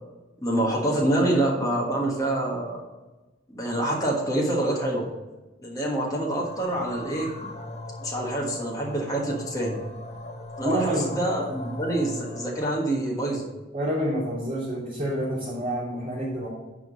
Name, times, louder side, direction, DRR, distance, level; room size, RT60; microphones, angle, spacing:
voice 1, 0.4-2.8 3.5-5.1 5.6-7.3 8.0-9.8 10.6-13.5, right 1 dB, 20° left, -2 dB, 1.4 m, -26 dB
sound 1, 6.4-12.6, left 1 dB, 35° left, 1.0 m, -39 dB
voice 2, 10.6-11.1 13.7-16.5, equal, 30° right, -11 dB, 3.1 m, -28 dB
10.5 x 3.8 x 6.1 m, 1.1 s
head